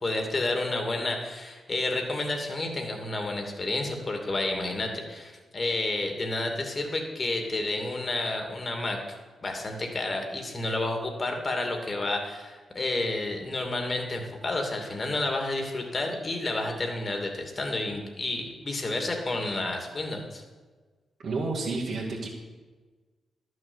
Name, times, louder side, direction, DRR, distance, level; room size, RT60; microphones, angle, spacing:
voice 1, 0.0-9.0 9.4-20.4, left 2 dB, 40° left, 3 dB, 2.6 m, -30 dB
voice 2, 21.2-22.3, right 3 dB, 60° right, -5 dB, 2.1 m, -30 dB
11.5 x 6.4 x 8.0 m, 1.3 s
supercardioid pair, 55°, 0 cm